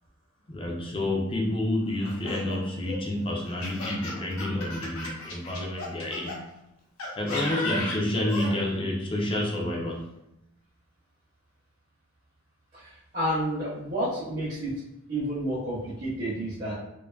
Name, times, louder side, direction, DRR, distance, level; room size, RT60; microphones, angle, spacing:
voice 1, 0.5-6.4 7.2-10.1, left 1 dB, 25° left, -1 dB, 0.4 m, -29 dB
Laughter, 2.0-6.4 7.0-8.5, left 2 dB, 85° left, 0.7 m, -35 dB
voice 2, 12.7-14.7 15.1-16.8, right 1 dB, 40° right, -9 dB, 0.7 m, -30 dB
2.5 x 2.3 x 2.2 m, 0.87 s
head